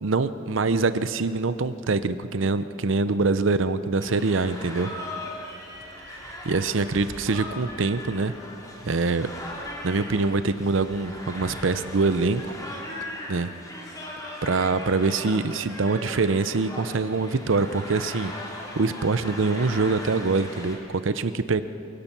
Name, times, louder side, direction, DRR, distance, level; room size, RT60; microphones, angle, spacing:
voice 1, 0.0-4.9 6.0-8.3 8.8-9.3 9.8-12.5 13.3-13.5 14.4-18.3 18.6-21.6, right 3 dB, 65° right, 12 dB, 0.7 m, -24 dB
sound 1, 4.0-20.8, left 1 dB, 20° left, 3.2 m, -39 dB
27.5 x 17.0 x 6.0 m, 2.7 s
head